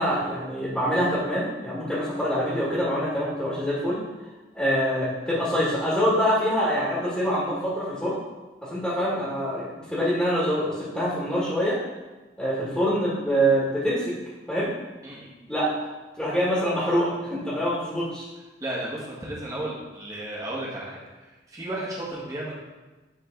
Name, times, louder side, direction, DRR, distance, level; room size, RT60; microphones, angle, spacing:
voice 1, 0.0-4.0 4.5-8.2 8.6-11.8 12.4-14.1 14.5-14.7 15.5-15.9 16.2-18.3, equal, 5° left, -9 dB, 1.9 m, -25 dB
voice 2, 18.6-22.5, right 1 dB, 20° right, -5 dB, 1.6 m, -34 dB
10.0 x 3.9 x 3.8 m, 1.2 s
head